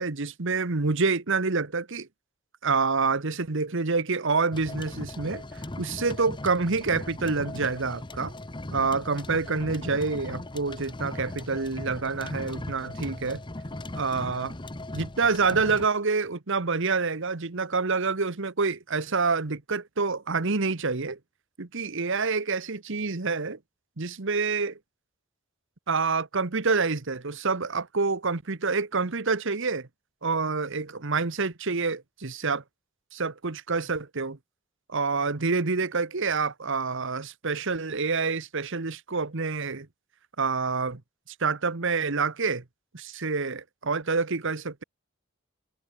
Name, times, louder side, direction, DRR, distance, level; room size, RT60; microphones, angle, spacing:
voice 1, 0.0-2.1 2.6-5.4 5.8-8.3 8.7-13.4 14.0-14.5 14.9-21.2 21.6-23.6 24.0-24.8 25.9-29.9 30.2-32.6 33.1-34.4 34.9-39.9 40.4-41.0 41.4-42.6 42.9-44.8, right 4 dB, 65° right, 1.3 m, -27 dB
sound 1, 4.5-15.9, left 1 dB, 25° left, 1.1 m, -38 dB
head